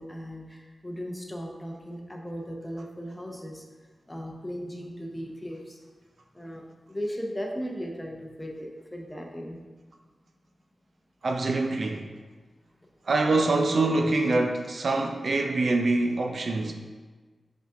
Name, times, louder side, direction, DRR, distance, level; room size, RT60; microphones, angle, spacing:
voice 1, 0.0-3.6 4.1-5.8 6.3-9.6, equal, 10° left, 0 dB, 0.8 m, -37 dB
voice 2, 11.2-12.1 13.1-16.7, right 2 dB, 60° right, 3 dB, 0.5 m, -25 dB
7.0 x 3.7 x 3.7 m, 1.4 s
wide cardioid pair, 85°, 0 cm